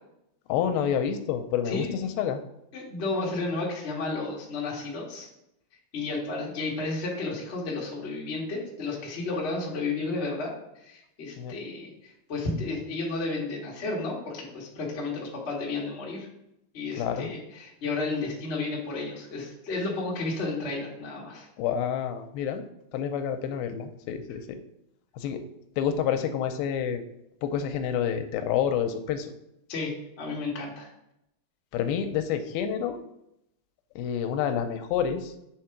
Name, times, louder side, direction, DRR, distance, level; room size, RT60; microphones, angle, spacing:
voice 1, 0.5-2.4 11.4-11.5 17.0-17.3 21.6-22.6 22.9-24.6 25.2-25.4 25.8-27.0 27.4-29.3 31.7-33.0 34.0-35.3, left 8 dB, 85° left, 8 dB, 2.4 m, -28 dB
voice 2, 2.7-5.3 5.9-10.5 10.8-16.3 16.7-21.5 29.7-30.9, left 3 dB, 65° left, -4 dB, 0.6 m, -32 dB
8.3 x 3.7 x 4.6 m, 0.82 s
omnidirectional pair, 4.2 m